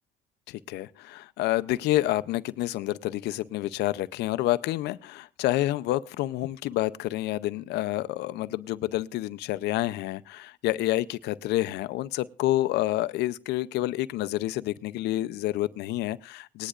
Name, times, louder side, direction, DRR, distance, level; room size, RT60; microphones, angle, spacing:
voice 1, 0.5-16.7, left 16 dB, 80° left, 0.6 m, -28 dB
20.0 x 10.0 x 2.5 m
cardioid pair, 110°, 17 cm